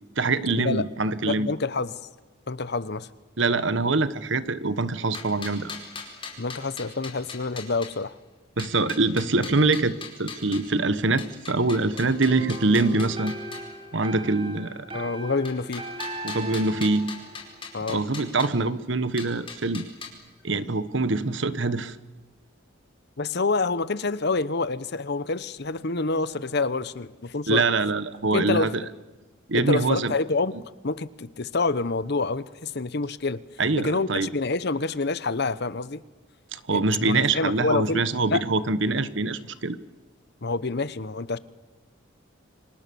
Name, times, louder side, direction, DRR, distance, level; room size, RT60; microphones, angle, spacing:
voice 1, 0.2-1.5 3.4-5.7 8.6-13.3 13.9-14.9 16.2-17.1 17.9-19.9 20.4-22.0 27.5-28.8 29.5-30.1 33.6-34.3 36.5-39.8, right 3 dB, 60° right, 14 dB, 1.2 m, -24 dB
voice 2, 1.3-1.9 2.5-3.1 6.4-8.2 14.9-15.8 17.7-18.0 23.2-27.7 28.3-28.7 29.5-33.4 33.7-36.0 36.7-38.4 40.4-41.4, left 3 dB, 55° left, 16 dB, 1.0 m, -27 dB
sound 1, 5.0-7.9 8.6-10.7 11.2-13.7 15.5-18.5 19.2-20.1, left 5 dB, 25° left, 4.9 m, -40 dB
sound 2, 11.9-17.9, right 1 dB, 25° right, 2.8 m, -38 dB
30.0 x 25.5 x 7.0 m, 1.2 s
head